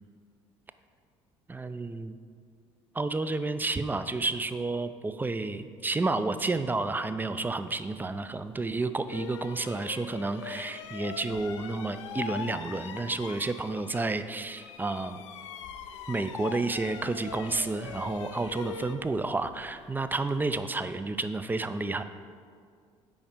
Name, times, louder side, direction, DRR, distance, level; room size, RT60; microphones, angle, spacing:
voice 1, 1.5-2.2 2.9-15.2 16.1-22.0, right 3 dB, 10° right, 11 dB, 0.4 m, -31 dB
sound 1, 8.4-8.5 9.0-14.2 14.5-20.6, left 7 dB, 75° left, 0.4 m, -42 dB
7.1 x 5.0 x 5.1 m, 2.2 s
figure-of-eight pair, 55°, 16 cm